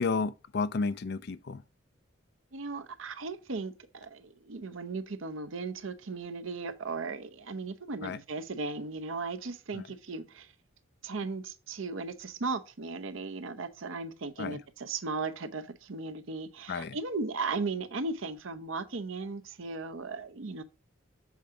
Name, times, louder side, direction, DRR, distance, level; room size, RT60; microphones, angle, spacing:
voice 1, 0.0-1.6 8.0-8.2 9.7-9.8 14.4-14.6 16.7-17.0, left 4 dB, 50° left, 0.4 m, -32 dB
voice 2, 2.5-10.5 11.0-20.6, right 3 dB, 75° right, 0.8 m, -36 dB
7.3 x 4.7 x 3.6 m
head